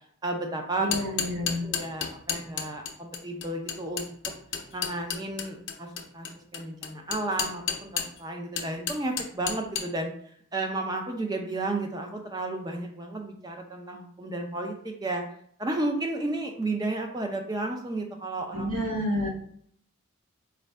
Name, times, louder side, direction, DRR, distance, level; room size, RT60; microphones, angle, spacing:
voice 1, 0.2-0.9 1.4-4.1 4.7-5.9 6.1-6.3 6.5-10.1 10.5-15.2 15.6-18.7, right 2 dB, 20° right, 3 dB, 0.5 m, -32 dB
sound 1, 0.7-8.2 8.6-9.9, left 7 dB, 60° left, 0.6 m, -31 dB
voice 2, 0.8-1.6 18.5-19.3, left 1 dB, 90° right, -2 dB, 1.3 m, -29 dB
4.3 x 2.5 x 3.2 m, 0.63 s
head